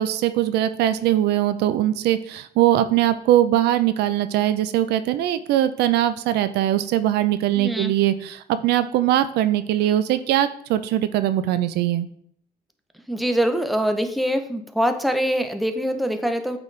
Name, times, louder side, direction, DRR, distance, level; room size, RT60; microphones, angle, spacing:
voice 1, 0.0-12.1, right 12 dB, 75° right, 12 dB, 0.5 m, -21 dB
voice 2, 7.5-7.9 13.1-16.6, equal, ahead, 7 dB, 0.6 m, -23 dB
8.2 x 4.1 x 3.3 m, 0.64 s
cardioid pair, 110°, 17 cm